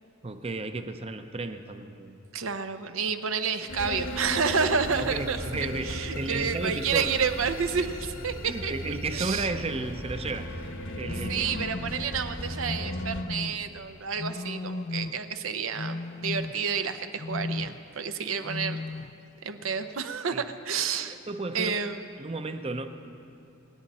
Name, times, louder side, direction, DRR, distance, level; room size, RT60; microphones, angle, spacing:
voice 1, 0.2-2.2 5.0-7.1 8.5-10.6 10.9-11.5 20.3-20.4 21.0-21.9 22.2-22.9, right 3 dB, 30° right, 8 dB, 0.7 m, -33 dB
voice 2, 2.3-8.7 9.1-9.5 11.3-18.8 19.4-21.2 21.5-22.0, right 6 dB, 70° right, 9 dB, 0.7 m, -30 dB
sound 1, 3.7-13.2, left 1 dB, 65° left, 1.2 m, -36 dB
sound 2, 11.0-12.1 12.6-13.7 14.2-15.3 15.7-16.8 17.2-17.9 18.4-19.2, left 2 dB, 35° left, 0.3 m, -35 dB
25.5 x 10.0 x 4.2 m, 2.7 s
head